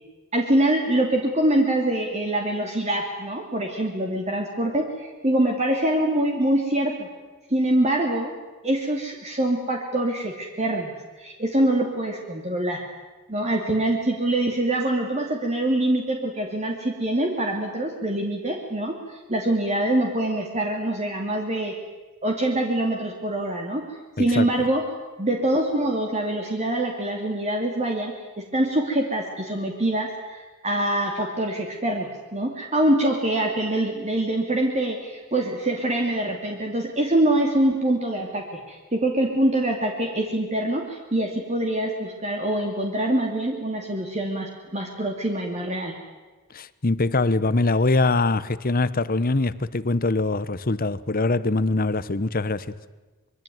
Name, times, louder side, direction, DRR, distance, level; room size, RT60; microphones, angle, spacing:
voice 1, 0.3-7.1 7.5-8.3 8.6-12.8 13.3-19.0 19.3-21.7 22.2-23.8 24.2-24.8 25.2-46.0, right 1 dB, 30° right, 2.7 m, -24 dB
voice 2, 24.2-24.5 46.5-52.7, left 2 dB, 40° left, 1.0 m, -23 dB
25.5 x 23.0 x 9.4 m
head